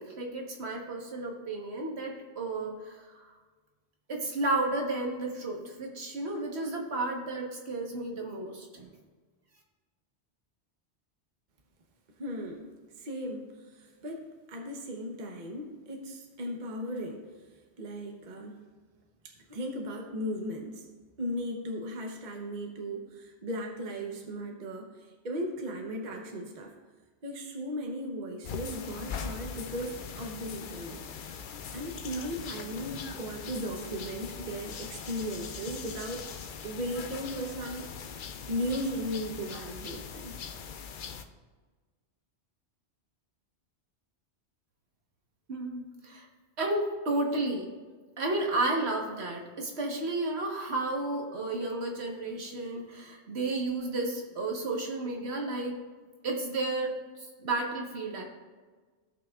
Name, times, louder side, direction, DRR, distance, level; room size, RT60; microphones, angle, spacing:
voice 1, 0.0-3.2 4.1-8.9 45.5-46.3 46.6-47.7 48.2-55.7 56.2-58.2, right 2 dB, 70° right, 0 dB, 1.5 m, -32 dB
voice 2, 12.2-12.7 13.0-17.2 17.8-18.6 19.2-20.9 21.2-26.7 27.2-31.0 31.7-37.9 38.5-40.4, equal, 45° right, 1 dB, 1.0 m, -37 dB
sound 1, 28.4-41.2, left 6 dB, 55° left, 0.6 m, -41 dB
16.0 x 5.9 x 2.4 m, 1.4 s
omnidirectional pair, 1.1 m